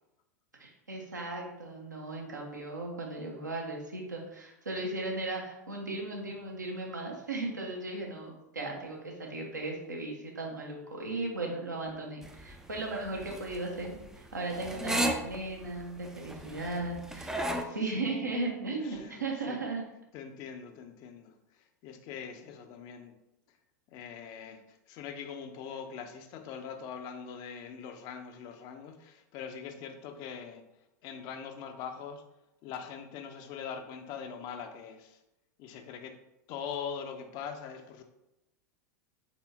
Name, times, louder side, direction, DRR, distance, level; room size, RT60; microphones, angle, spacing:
voice 1, 0.6-17.4 17.7-19.8, right 2 dB, 85° right, -1 dB, 0.9 m, -36 dB
sound 1, 12.2-17.6, right 1 dB, 5° right, 0.4 m, -35 dB
voice 2, 18.8-19.2 19.5-19.6 20.1-23.1 23.9-30.6 31.0-32.2 32.6-35.2 35.6-36.2 36.5-38.0, left 7 dB, 45° left, 6 dB, 0.5 m, -42 dB
4.1 x 3.5 x 2.8 m, 0.90 s
figure-of-eight pair, 90°, 10 cm